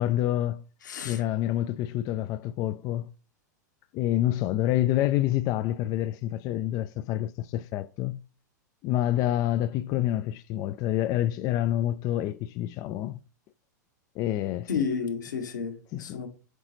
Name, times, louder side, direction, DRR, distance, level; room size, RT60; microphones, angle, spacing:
voice 1, 0.0-0.6 1.0-3.1 3.9-8.2 8.8-13.2 14.2-14.7 15.9-16.2, left 13 dB, 40° left, 0.3 m, -27 dB
voice 2, 0.8-1.2 14.7-16.3, left 6 dB, 80° left, 1.5 m, -31 dB
7.8 x 3.9 x 3.1 m
hypercardioid pair, 105°, 10 cm